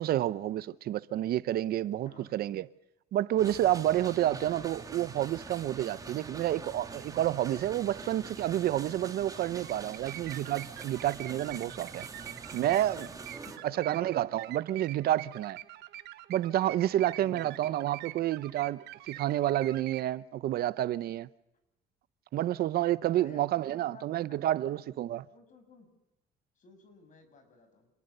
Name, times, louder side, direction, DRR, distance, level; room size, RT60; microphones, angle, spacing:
voice 1, 0.0-2.7 3.1-12.1 12.5-13.1 13.8-15.6 16.3-21.3 22.3-25.2, right 13 dB, 65° right, 0.8 m, -29 dB
sound 1, 3.4-13.6, right 4 dB, 20° right, 2.7 m, -45 dB
sound 2, 9.6-20.1, right 15 dB, 85° right, 1.2 m, -46 dB
voice 2, 13.4-14.2 17.2-17.6 23.1-24.8 25.3-25.9 26.5-27.9, left 4 dB, 50° left, 6.5 m, -55 dB
27.5 x 19.5 x 6.8 m
cardioid pair, 110°, 17 cm